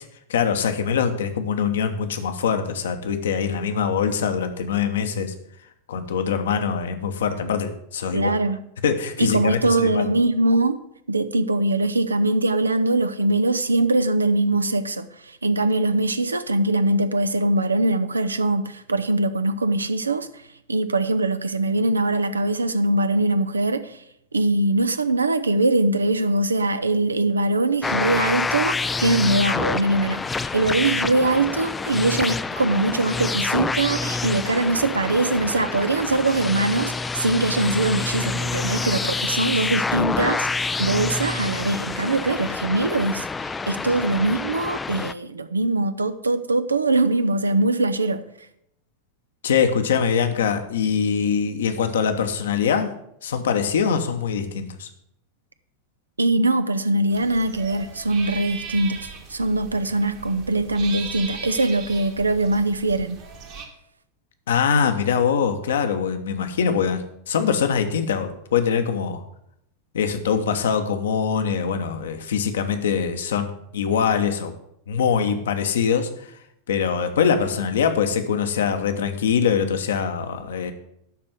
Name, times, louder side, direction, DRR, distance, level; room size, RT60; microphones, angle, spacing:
voice 1, 0.3-5.3 5.9-8.3 8.8-10.1 49.4-52.9 53.2-54.9 64.5-69.2 69.9-74.5 74.9-76.1 76.7-80.7, left 7 dB, 60° left, 1.0 m, -23 dB
voice 2, 8.1-8.6 9.2-10.8 11.1-20.3 20.7-24.0 24.3-43.3 43.7-48.2 56.2-63.2, right 2 dB, 75° right, 0.6 m, -22 dB
sound 1, 27.8-45.1, left 4 dB, 15° left, 0.4 m, -27 dB
sound 2, 57.1-63.7, right 6 dB, 45° right, 1.6 m, -38 dB
11.5 x 4.3 x 7.6 m
figure-of-eight pair, 90°, 0 cm